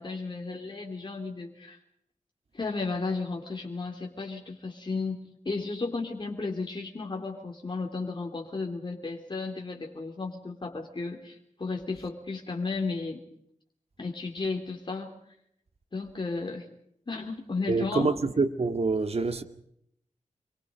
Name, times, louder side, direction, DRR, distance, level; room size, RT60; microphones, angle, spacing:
voice 1, 0.0-1.8 2.5-13.2 14.0-15.1 15.9-16.6 17.1-18.1, left 3 dB, 40° left, 3.3 m, -34 dB
voice 2, 17.7-19.4, right 3 dB, 55° right, 2.1 m, -26 dB
27.5 x 23.5 x 5.2 m
wide cardioid pair, 85°, 13 cm